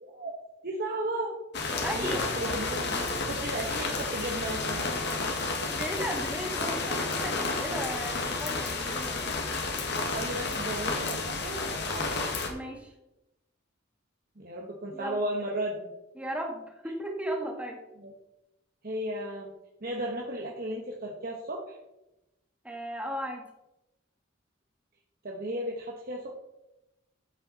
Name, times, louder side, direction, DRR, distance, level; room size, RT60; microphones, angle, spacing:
voice 1, 0.0-0.3 0.6-1.4 1.9-3.0 3.3-4.9 10.0-12.1 14.4-15.9 18.0-18.1 18.8-19.5 19.8-21.8 25.2-26.3, right 1 dB, 50° right, -1 dB, 1.4 m, -35 dB
sound 1, 1.5-12.5, left 3 dB, 60° left, 1.8 m, -31 dB
voice 2, 1.8-2.3 5.6-9.3 12.5-12.9 14.9-15.2 16.2-17.8 22.6-23.4, equal, 5° right, 1 dB, 1.9 m, -35 dB
13.0 x 8.9 x 4.2 m, 0.95 s
head